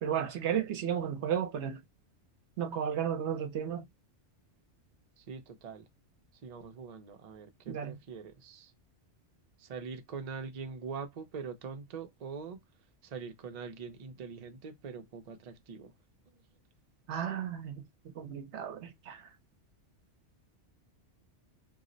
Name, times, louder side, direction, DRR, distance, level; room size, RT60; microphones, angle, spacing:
voice 1, 0.0-1.8 2.6-3.9 7.7-8.0 17.1-17.8 18.1-19.3, right 9 dB, 75° right, 0.9 m, -33 dB
voice 2, 5.2-5.9 6.4-8.7 9.6-12.6 13.0-15.9, right 5 dB, 50° right, 0.5 m, -43 dB
2.7 x 2.0 x 3.7 m
omnidirectional pair, 1.2 m